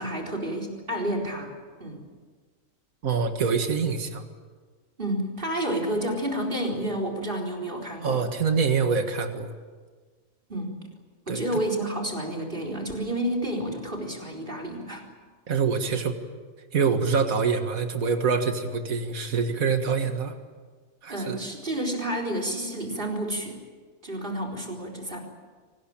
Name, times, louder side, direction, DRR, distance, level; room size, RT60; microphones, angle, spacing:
voice 1, 0.0-1.5 1.8-2.0 5.0-8.2 10.5-10.8 11.3-15.0 21.1-23.6 24.0-25.2, right 1 dB, 40° right, 4 dB, 4.4 m, -30 dB
voice 2, 3.0-4.3 8.0-9.5 11.3-11.4 15.5-16.2 16.7-20.4 21.0-21.4, right 5 dB, 85° right, 6 dB, 2.1 m, -25 dB
25.0 x 19.5 x 8.9 m, 1.5 s
omnidirectional pair, 1.4 m